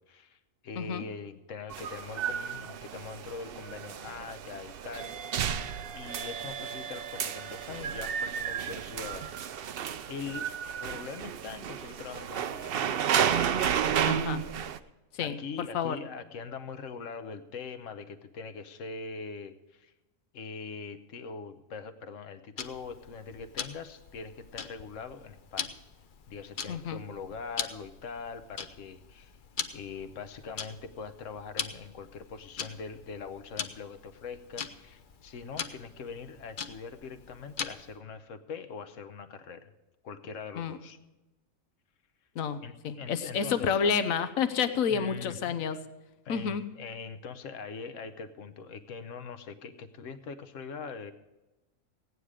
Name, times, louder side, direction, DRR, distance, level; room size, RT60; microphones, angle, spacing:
voice 1, 0.0-5.1 5.9-9.7 10.1-10.5 10.8-12.8 13.9-14.3 15.2-19.9 20.3-25.7 26.3-29.3 29.7-39.7 40.0-41.0 42.6-43.8 44.9-45.6 46.2-51.1, left 5 dB, 70° left, 11 dB, 1.3 m, -42 dB
sound 1, 1.7-14.8, right 8 dB, 60° right, 0.6 m, -32 dB
voice 2, 14.0-14.4 15.2-16.0 26.7-27.0 40.5-40.8 42.3-42.6 42.8-45.8 46.3-46.6, left 6 dB, 85° left, 11 dB, 1.2 m, -29 dB
Tick-tock, 22.6-38.0, left 6 dB, 50° left, 0.7 m, -42 dB
16.5 x 9.7 x 4.9 m, 1.1 s
omnidirectional pair, 1.4 m